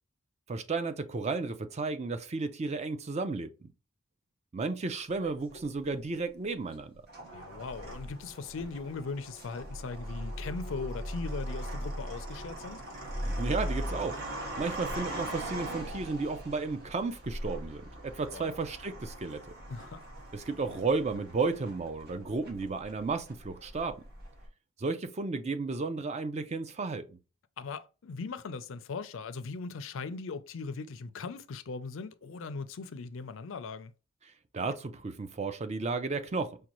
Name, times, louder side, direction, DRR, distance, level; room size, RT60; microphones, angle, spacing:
voice 1, 0.5-3.7 4.5-6.9 13.2-14.2 14.6-19.4 20.3-24.0 24.8-27.0 34.5-36.6, right 3 dB, 30° right, 0.4 m, -33 dB
sound 1, 5.2-6.0 6.7-24.5, equal, 45° right, 1.5 m, -40 dB
voice 2, 7.3-12.8 18.3-18.6 19.7-20.1 27.6-33.9, left 4 dB, 65° left, 0.4 m, -39 dB
5.1 x 2.2 x 2.9 m
head